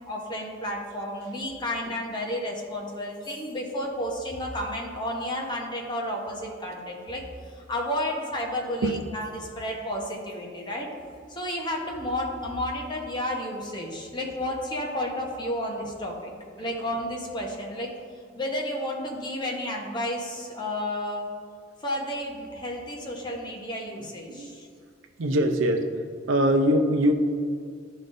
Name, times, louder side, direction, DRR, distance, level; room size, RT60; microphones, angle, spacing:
voice 1, 0.1-10.9 11.3-16.3 16.6-17.9 18.3-21.3 21.8-24.7, left 1 dB, 25° left, -1 dB, 0.9 m, -32 dB
voice 2, 25.2-25.9 26.3-27.1, equal, 90° right, 5 dB, 0.6 m, -22 dB
11.5 x 3.8 x 2.6 m, 2.2 s
head